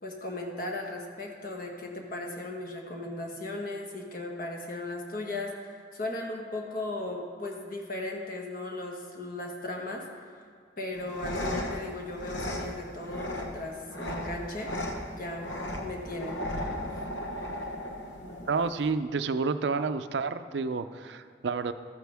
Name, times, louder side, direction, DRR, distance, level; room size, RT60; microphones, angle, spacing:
voice 1, 0.0-10.0 10.8-14.7 15.1-15.5 15.8-16.4, left 2 dB, 50° left, 1 dB, 1.4 m, -37 dB
sound 1, 10.9-18.9, left 1 dB, 85° left, 1.1 m, -36 dB
voice 2, 18.5-21.7, right 4 dB, 70° right, 11 dB, 0.4 m, -29 dB
13.5 x 9.3 x 3.5 m, 2.1 s
head